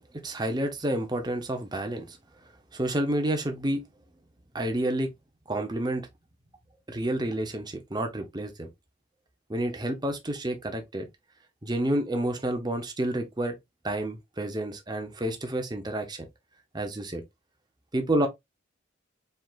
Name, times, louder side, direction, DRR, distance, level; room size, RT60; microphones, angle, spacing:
voice 1, 0.0-2.2 2.7-3.8 4.5-5.1 5.5-6.1 6.9-8.7 9.5-11.1 11.6-13.5 13.8-16.3 16.7-17.2 17.9-18.3, right 1 dB, 20° right, 0.7 m, -29 dB
4.7 x 3.8 x 2.4 m
head